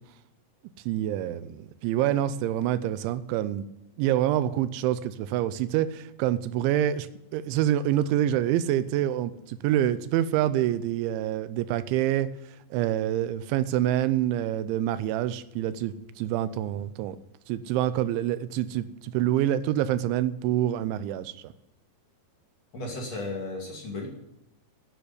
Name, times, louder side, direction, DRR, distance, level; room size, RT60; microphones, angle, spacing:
voice 1, 0.9-3.6 4.0-7.1 7.3-12.3 12.7-17.2 17.5-21.4, right 12 dB, 85° right, 14 dB, 3.1 m, -26 dB
voice 2, 22.7-24.1, left 2 dB, 40° left, -1 dB, 3.2 m, -34 dB
10.0 x 9.8 x 9.8 m, 0.87 s
omnidirectional pair, 5.2 m